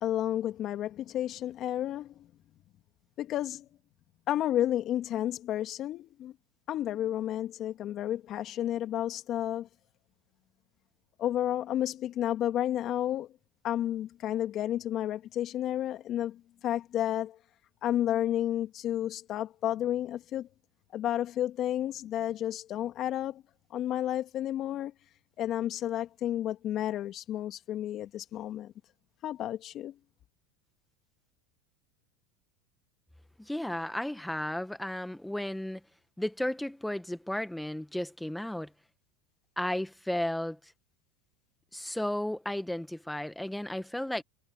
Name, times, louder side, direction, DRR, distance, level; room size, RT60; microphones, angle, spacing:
voice 1, 0.0-2.3 3.2-3.7 4.3-6.3 6.7-9.7 11.2-13.3 13.6-17.4 17.8-20.5 20.9-23.4 23.7-24.9 25.4-28.7 29.2-29.9, left 12 dB, 45° left, 2.3 m, -31 dB
voice 2, 33.4-35.8 36.2-38.7 39.6-40.7 41.7-44.2, left 1 dB, 5° left, 1.1 m, -34 dB
supercardioid pair, 110°, 0 cm